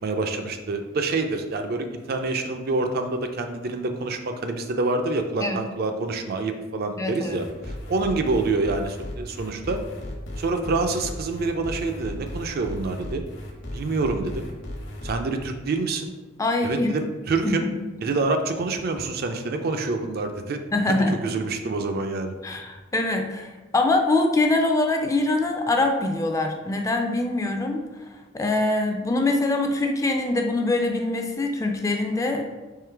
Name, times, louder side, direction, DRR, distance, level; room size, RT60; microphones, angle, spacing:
voice 1, 0.0-9.8 10.4-13.2 13.7-14.5 15.0-16.1 16.6-17.6 18.0-20.6 20.9-22.3, right 3 dB, 50° right, 6 dB, 0.4 m, -27 dB
voice 2, 7.0-7.4 16.4-17.0 17.4-17.7 20.7-21.2 22.4-27.8 28.3-32.4, left 2 dB, 15° left, 3 dB, 0.3 m, -23 dB
sound 1, 7.3-15.1, left 1 dB, 70° left, 1.0 m, -36 dB
3.7 x 3.1 x 4.5 m, 1.2 s
head